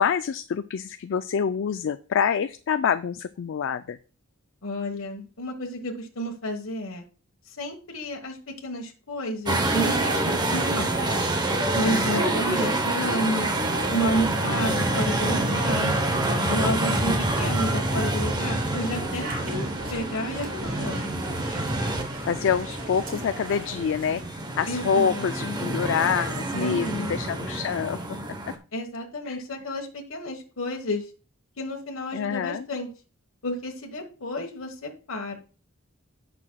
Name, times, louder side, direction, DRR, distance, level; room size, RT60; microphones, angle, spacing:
voice 1, 0.0-4.0 11.8-12.3 16.9-17.2 22.3-28.0 28.5-28.6 29.3-29.4 32.1-32.7, left 7 dB, 60° left, 11 dB, 0.4 m, -26 dB
voice 2, 4.6-7.0 7.6-10.9 11.7-13.5 13.9-16.0 16.5-21.2 24.7-25.6 26.5-27.2 28.7-31.1 31.6-32.9 33.4-35.4, equal, 80° left, 2 dB, 1.3 m, -31 dB
sound 1, 9.5-28.6, right 2 dB, 20° right, 0.9 m, -27 dB
sound 2, 17.1-24.2, right 1 dB, 45° right, 3.2 m, -41 dB
16.5 x 6.0 x 2.3 m, 0.36 s
head